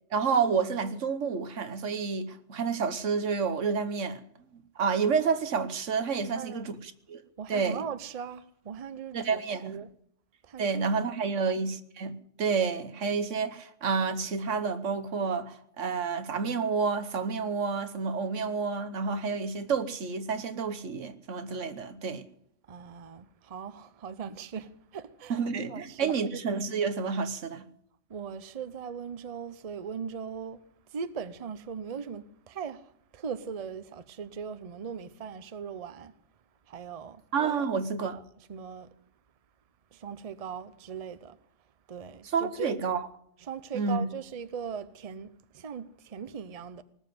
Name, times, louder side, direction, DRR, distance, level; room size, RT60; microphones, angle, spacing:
voice 1, 0.1-4.2 4.7-7.2 7.5-7.8 9.1-9.8 10.6-22.2 25.3-27.7 37.3-38.2 42.3-43.1 43.7-44.0, right 5 dB, 85° right, 1.5 m, -29 dB
voice 2, 6.2-6.7 7.4-9.9 10.4-10.7 11.2-11.5 22.7-26.1 28.1-36.1 36.7-37.2 38.1-38.2 38.5-38.9 39.9-41.4 41.9-42.8 43.4-46.8, right 7 dB, 35° right, 0.7 m, -39 dB
19.0 x 7.4 x 9.2 m
omnidirectional pair, 1.2 m